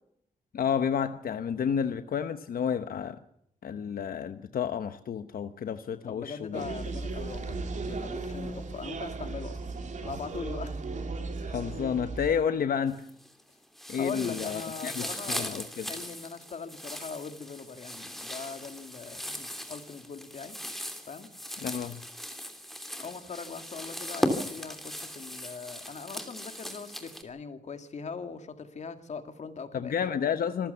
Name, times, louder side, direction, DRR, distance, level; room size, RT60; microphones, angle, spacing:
voice 1, 0.5-3.2 3.6-6.7 11.5-13.0 13.9-15.9 21.6-22.0 29.7-30.7, left 7 dB, 85° left, 10 dB, 1.1 m, -30 dB
voice 2, 6.1-9.6 10.0-10.8 14.0-20.6 21.1-21.3 23.0-30.1, left 5 dB, 50° left, 8 dB, 2.3 m, -41 dB
sound 1, 6.5-12.3, right 3 dB, 60° right, 3.3 m, -36 dB
sound 2, 12.9-13.4 13.8-27.2, equal, ahead, 2.9 m, -38 dB
26.0 x 15.0 x 7.0 m, 0.75 s
wide cardioid pair, 150°, 15 cm